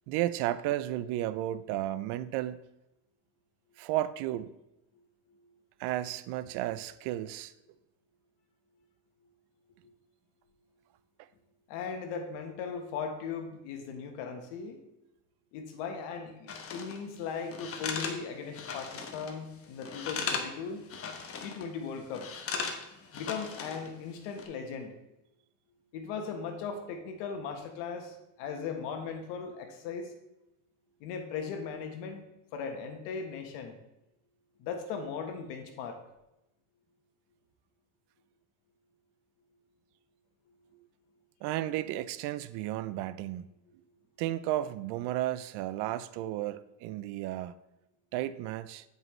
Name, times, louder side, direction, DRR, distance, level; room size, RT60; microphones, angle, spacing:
voice 1, 0.1-2.6 3.8-4.5 5.8-7.5 11.2-11.3 41.4-43.5 44.2-47.6 48.1-48.8, right 14 dB, 70° right, 0.5 m, -33 dB
voice 2, 11.7-14.8 15.5-20.9 21.4-22.3 23.1-25.0 25.9-30.1 31.0-32.2 32.5-33.8 34.6-36.0, left 6 dB, 80° left, 1.4 m, -38 dB
sound 1, 16.5-17.0 17.5-19.4 19.6-20.6 20.9-21.7 22.1-23.9 24.2-24.5, left 5 dB, 30° left, 0.9 m, -37 dB
9.1 x 5.4 x 3.2 m
cardioid pair, 115°, 43 cm